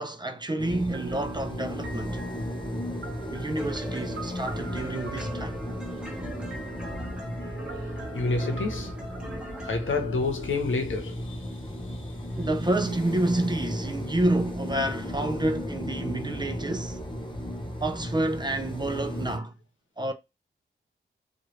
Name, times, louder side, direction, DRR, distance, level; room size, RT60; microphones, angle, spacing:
voice 1, 0.0-2.2 3.3-5.6 12.4-17.0 17.8-19.5 20.0-20.1, right 1 dB, 20° right, 0.5 m, -29 dB
sound 1, 0.6-19.4, left 1 dB, 25° left, 0.7 m, -35 dB
sound 2, 0.9-10.7, right 4 dB, 70° right, 0.7 m, -44 dB
sound 3, 3.6-10.0, right 1 dB, 5° right, 1.2 m, -41 dB
voice 2, 7.3-9.1 9.3-11.5 11.9-12.0, left 3 dB, 80° left, 0.9 m, -30 dB
2.9 x 2.4 x 3.1 m
wide cardioid pair, 105°, 20 cm